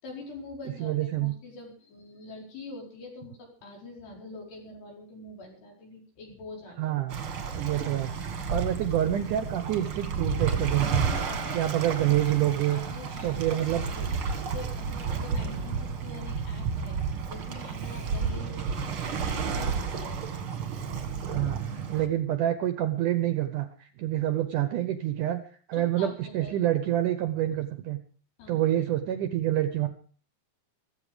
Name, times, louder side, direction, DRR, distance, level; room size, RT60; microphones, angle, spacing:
voice 1, 0.0-6.9 8.4-8.7 11.3-11.6 12.0-12.1 12.3-17.0 17.3-20.5 21.9-22.0 25.7-26.5 28.4-28.6, left 3 dB, 85° left, 0 dB, 6.8 m, -45 dB
voice 2, 0.8-1.3 6.8-7.2 7.5-8.1 8.5-11.1 11.5-12.8 13.2-13.8 21.3-21.6 21.9-23.7 24.0-25.4 25.7-28.0 28.5-29.9, right 12 dB, 70° right, 10 dB, 2.0 m, -27 dB
Waves surf, 7.1-22.1, right 5 dB, 50° right, 1.7 m, -32 dB
15.5 x 14.5 x 5.0 m, 0.41 s
omnidirectional pair, 4.7 m